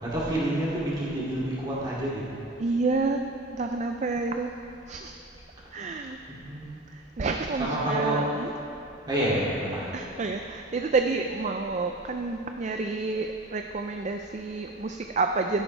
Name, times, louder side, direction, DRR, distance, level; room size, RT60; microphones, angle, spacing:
voice 1, 0.0-2.2 6.5-6.7 7.6-8.2 9.1-9.9, right 1 dB, 25° right, -8 dB, 2.7 m, -28 dB
voice 2, 2.6-3.2 3.6-4.5 4.9-5.2 5.7-6.2 7.2-8.5 9.9-15.6, right 3 dB, 40° right, 5 dB, 0.4 m, -29 dB
13.0 x 11.0 x 3.3 m, 2.9 s
head